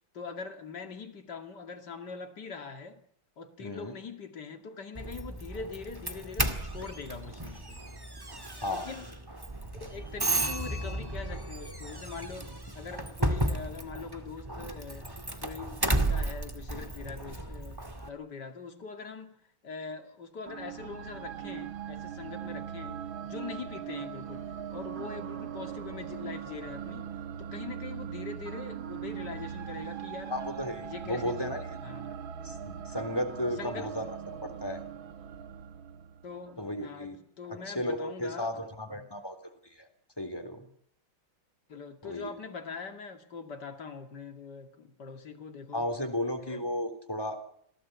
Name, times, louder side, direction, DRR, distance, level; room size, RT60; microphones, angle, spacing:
voice 1, 0.1-3.0 3.4-7.8 8.6-9.1 9.8-15.1 15.4-17.8 18.1-27.1 27.4-30.3 30.8-32.2 33.6-33.9 36.2-39.1 40.6-40.7 41.7-45.8 46.4-46.6, left 5 dB, 55° left, 2.9 m, -43 dB
voice 2, 3.6-3.9 8.6-8.9 30.3-31.8 32.4-34.8 36.6-37.2 37.7-39.4 39.6-39.9 40.2-40.6 42.0-42.3 45.7-47.4, left 1 dB, 10° left, 3.8 m, -34 dB
Doorbell, 4.9-18.1, right 2 dB, 10° right, 1.9 m, -34 dB
sound 1, 20.5-36.7, right 9 dB, 80° right, 2.1 m, -40 dB
27.0 x 18.5 x 8.3 m
omnidirectional pair, 2.1 m